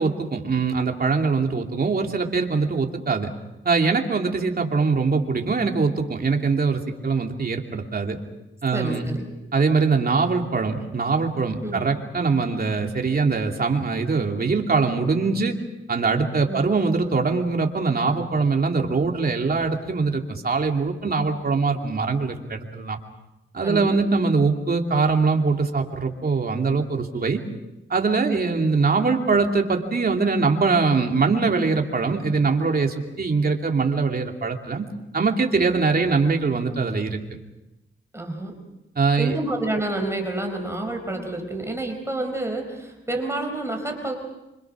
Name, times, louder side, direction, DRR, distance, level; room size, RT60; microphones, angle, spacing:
voice 1, 0.0-3.3 3.6-8.2 8.6-9.2 9.5-15.6 15.9-23.0 23.5-27.4 27.9-34.9 35.1-37.4 39.0-39.3, right 4 dB, 45° right, 3 dB, 2.8 m, -22 dB
voice 2, 8.7-9.3 11.6-11.8 16.5-16.6 23.6-23.9 28.3-28.4 38.1-38.5 39.2-44.1, right 2 dB, 15° right, 3 dB, 4.5 m, -29 dB
26.0 x 26.0 x 6.2 m, 0.96 s
wide cardioid pair, 115°, 21 cm